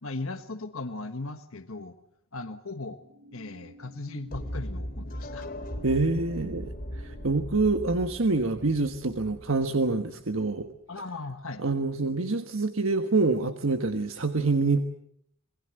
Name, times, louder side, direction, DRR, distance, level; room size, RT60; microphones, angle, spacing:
voice 1, 0.0-2.0 2.3-3.0 3.3-5.5 10.9-11.6, left 3 dB, 75° left, 8 dB, 1.4 m, -37 dB
sound 1, 2.9-9.0, equal, 55° right, 4.2 m, -53 dB
sound 2, 4.3-10.3, equal, 45° left, 3.1 m, -38 dB
voice 2, 5.8-10.7 11.6-14.8, right 3 dB, 70° right, 7 dB, 1.4 m, -26 dB
27.5 x 21.0 x 7.8 m, 0.72 s
head